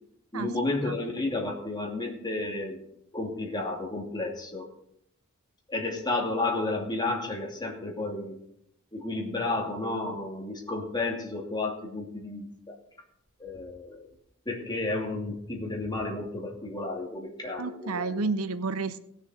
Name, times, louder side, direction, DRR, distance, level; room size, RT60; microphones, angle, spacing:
voice 1, 0.3-2.8 3.1-4.7 5.7-8.4 8.9-12.5 13.4-14.1 14.5-18.2, left 2 dB, 20° left, -1 dB, 2.6 m, -32 dB
voice 2, 17.6-19.0, right 3 dB, 70° right, 13 dB, 0.7 m, -30 dB
19.0 x 6.7 x 4.9 m, 0.74 s
head